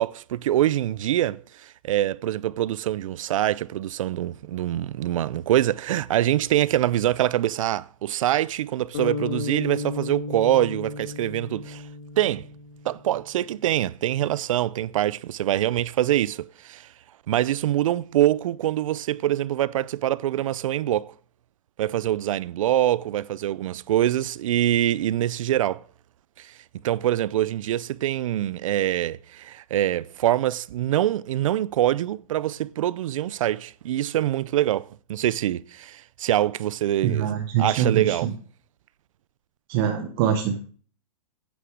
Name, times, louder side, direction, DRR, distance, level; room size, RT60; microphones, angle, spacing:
voice 1, 0.0-11.8 12.2-12.5 12.8-16.9 17.3-21.1 21.8-25.8 26.4-26.5 26.8-37.3 37.6-38.3, right 13 dB, 65° right, 0.5 m, -24 dB
sound 1, 8.9-13.2, left 4 dB, 50° left, 2.4 m, -34 dB
voice 2, 37.0-38.3 39.7-40.6, right 9 dB, 40° right, 1.1 m, -24 dB
9.5 x 6.6 x 6.3 m
hypercardioid pair, 150°, 18 cm